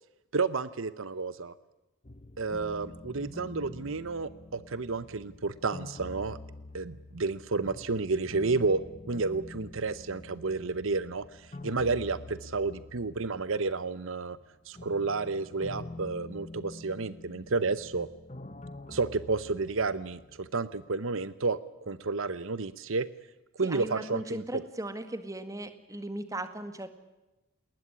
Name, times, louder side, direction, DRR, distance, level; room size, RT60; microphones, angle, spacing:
voice 1, 0.3-1.5 2.4-6.4 6.7-8.8 9.1-14.4 14.7-18.1 18.9-23.1 23.6-24.4, right 4 dB, 65° right, 16 dB, 0.8 m, -31 dB
sound 1, 2.0-14.1 14.4-20.8, left 2 dB, 30° left, 1.0 m, -46 dB
voice 2, 23.6-26.9, right 1 dB, 15° right, 10 dB, 1.9 m, -37 dB
20.5 x 19.5 x 9.7 m, 1.0 s
head